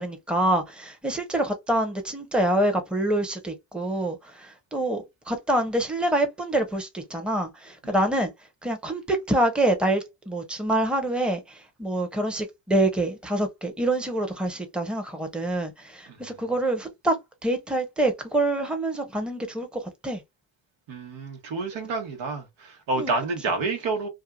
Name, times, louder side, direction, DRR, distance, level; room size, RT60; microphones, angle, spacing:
voice 1, 0.0-8.3 8.6-20.2 23.0-23.1, right 1 dB, ahead, 0.8 m, -26 dB
voice 2, 20.9-24.1, right 3 dB, 70° right, 1.2 m, -29 dB
2.7 x 2.4 x 2.3 m
supercardioid pair, 65°, 46 cm